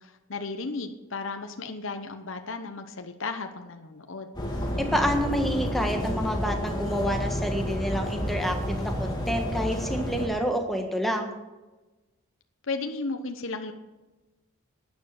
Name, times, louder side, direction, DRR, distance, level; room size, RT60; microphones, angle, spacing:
voice 1, 0.0-4.3 12.7-13.7, left 3 dB, 60° left, 6 dB, 0.9 m, -34 dB
sound 1, 4.3-10.3, equal, 20° left, 2.2 m, -30 dB
voice 2, 4.8-11.3, equal, ahead, 2 dB, 1.5 m, -28 dB
11.5 x 9.4 x 7.0 m, 1.1 s
head